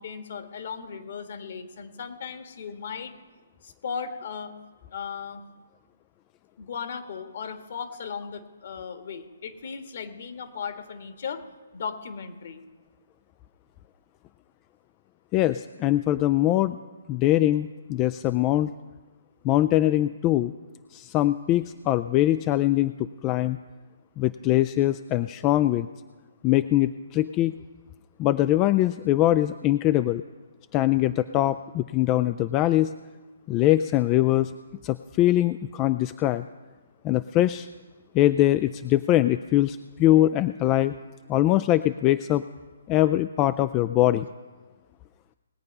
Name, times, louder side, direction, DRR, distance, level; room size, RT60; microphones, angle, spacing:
voice 1, 0.0-3.1 3.6-4.5 4.9-5.4 6.6-11.4 11.7-12.6, left 6 dB, 55° left, 7 dB, 1.7 m, -36 dB
voice 2, 15.3-16.8 17.1-18.7 19.4-20.5 20.9-23.6 24.2-25.9 26.4-27.5 28.2-30.2 30.7-32.9 33.5-34.5 34.8-36.5 37.0-37.7 38.1-40.9 41.3-42.4 42.9-44.3, left 14 dB, 25° left, 13 dB, 0.3 m, -22 dB
19.5 x 8.7 x 5.4 m, 1.3 s
hypercardioid pair, 145°, 0 cm